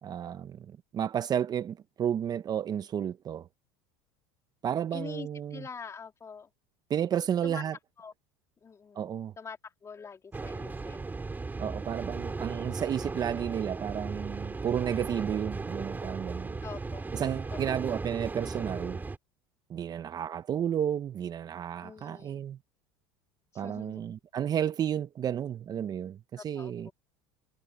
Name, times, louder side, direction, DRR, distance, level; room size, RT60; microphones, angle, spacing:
voice 1, 0.0-3.5 4.6-5.7 6.9-7.7 8.9-9.3 11.6-16.6 17.1-19.0 19.7-22.6 23.5-26.9, right 9 dB, 35° right, 0.9 m, -32 dB
voice 2, 4.9-6.5 7.4-7.6 8.0-8.1 8.6-11.0 16.6-17.0 17.5-17.6 21.8-22.4 23.6-24.0 26.4-26.9, left 5 dB, 25° left, 2.8 m, -44 dB
sound 1, 10.3-19.2, right 3 dB, 15° right, 4.2 m, -36 dB
supercardioid pair, 100°, 12 cm